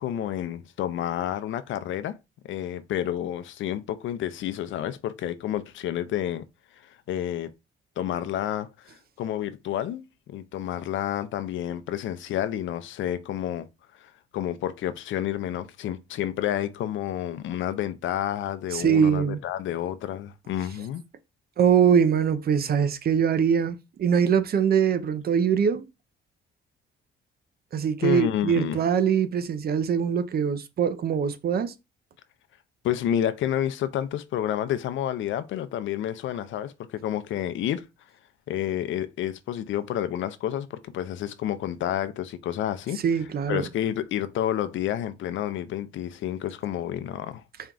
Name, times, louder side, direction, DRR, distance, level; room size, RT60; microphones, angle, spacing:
voice 1, 0.0-2.2 2.5-6.4 6.8-7.5 8.0-13.7 13.9-21.0 28.0-28.8 32.8-37.8 38.5-43.0 43.5-47.4, left 11 dB, 75° left, 0.5 m, -30 dB
voice 2, 18.7-19.4 21.6-25.8 27.7-31.7 43.0-43.7, right 7 dB, 50° right, 0.6 m, -23 dB
4.4 x 2.3 x 3.8 m
cardioid pair, 90°, 20 cm